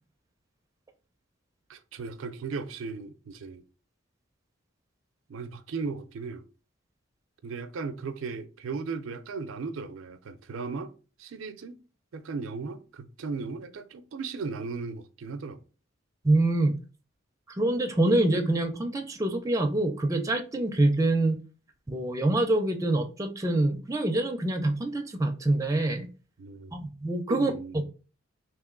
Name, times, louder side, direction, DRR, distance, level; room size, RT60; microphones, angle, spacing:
voice 1, 1.7-3.6 5.3-6.5 7.4-10.9 11.2-11.8 12.1-15.6 26.4-26.7 27.3-27.8, right 4 dB, 85° right, 0.4 m, -36 dB
voice 2, 16.2-16.7 17.6-21.4 21.9-26.1 26.7-27.5, right 2 dB, 15° right, 0.4 m, -25 dB
2.9 x 2.8 x 3.7 m
head